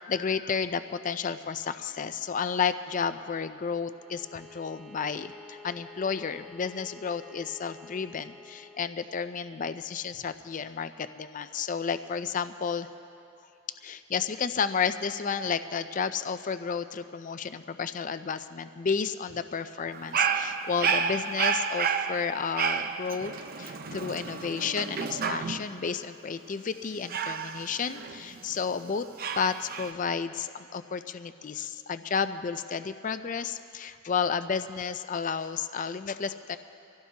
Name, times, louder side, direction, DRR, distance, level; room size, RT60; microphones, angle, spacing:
voice 1, 0.0-12.9 13.8-23.3 23.6-29.1 29.4-36.6, left 6 dB, 35° left, 11 dB, 0.4 m, -32 dB
Bowed string instrument, 3.9-8.9, left 3 dB, 5° right, 1.2 m, -50 dB
Dog, 19.9-25.8 27.1-28.6 29.2-29.9, right 6 dB, 45° right, 0.5 m, -30 dB
25.0 x 16.0 x 2.8 m, 2.7 s
head